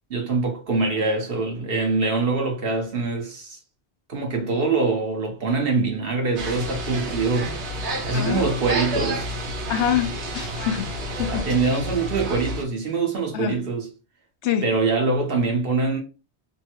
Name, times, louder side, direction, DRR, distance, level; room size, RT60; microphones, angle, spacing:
voice 1, 0.1-3.6 4.1-7.6 8.1-9.3 11.3-13.9 14.6-16.0, right 3 dB, 60° right, 1.1 m, -24 dB
sound 1, 6.4-12.6, right 1 dB, 85° right, 1.1 m, -30 dB
voice 2, 8.1-8.5 9.7-11.5 13.3-13.6 14.4-14.7, left 9 dB, 80° left, 0.9 m, -26 dB
3.2 x 2.1 x 3.0 m
omnidirectional pair, 1.1 m